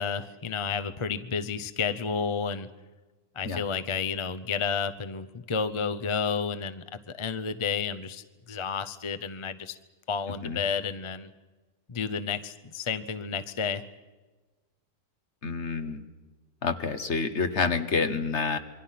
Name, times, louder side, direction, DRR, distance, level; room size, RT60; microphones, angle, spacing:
voice 1, 0.0-2.7 3.4-9.8 10.1-11.3 11.9-13.8, left 6 dB, 30° left, 10 dB, 0.6 m, -31 dB
voice 2, 15.4-16.0 16.6-18.6, left 4 dB, 50° left, 8 dB, 1.7 m, -28 dB
27.0 x 23.5 x 5.8 m, 1.2 s
omnidirectional pair, 1.5 m